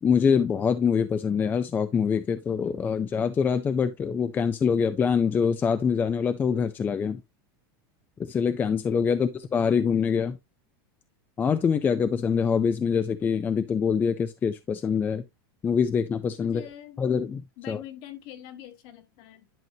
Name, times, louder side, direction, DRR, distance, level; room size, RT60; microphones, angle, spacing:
voice 1, 0.0-7.2 8.2-10.4 11.4-15.2 15.6-16.6 17.0-17.4 17.7-17.8, left 6 dB, 15° left, 0.4 m, -24 dB
voice 2, 16.4-17.0 17.6-19.5, left 12 dB, 45° left, 1.4 m, -44 dB
10.5 x 4.6 x 2.7 m
supercardioid pair, 155°, 12 cm